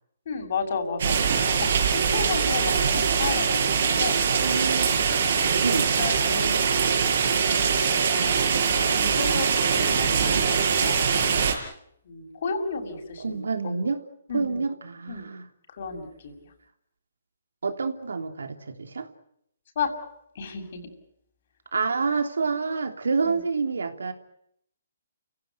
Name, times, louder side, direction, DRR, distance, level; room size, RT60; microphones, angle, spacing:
voice 1, 0.3-1.4 1.8-4.2 5.2-5.3 6.0-6.7 7.5-8.3 9.0-9.5 9.7-11.1 12.1-13.4 14.3-14.6 15.1-15.3 15.8-16.3 19.8-19.9 20.4-20.8, left 5 dB, 55° left, 5 dB, 7.0 m, -33 dB
sound 1, 1.0-11.5, right 6 dB, 60° right, 5.9 m, -23 dB
voice 2, 4.4-5.0 5.6-5.9 13.2-14.0 14.3-15.5 17.6-19.1 21.7-24.1, right 4 dB, 85° right, 7 dB, 3.3 m, -28 dB
30.0 x 17.0 x 9.5 m, 0.73 s
hypercardioid pair, 145°, 0 cm